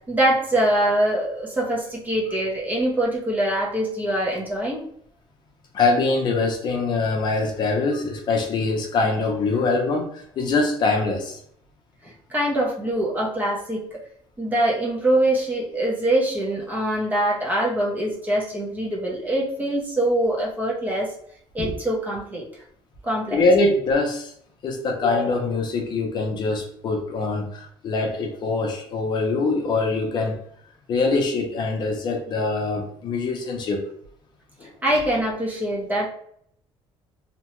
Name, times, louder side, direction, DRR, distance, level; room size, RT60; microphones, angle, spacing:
voice 1, 0.1-4.8 12.0-14.0 14.4-21.1 21.5-22.4 23.0-23.4 34.8-36.1, right 1 dB, 15° right, -3 dB, 0.6 m, -23 dB
voice 2, 5.7-11.4 23.3-24.3 24.6-30.4 30.9-33.8 34.6-34.7, left 3 dB, 45° left, 1 dB, 0.6 m, -23 dB
2.8 x 2.2 x 2.9 m, 0.66 s
cardioid pair, 170°, 11 cm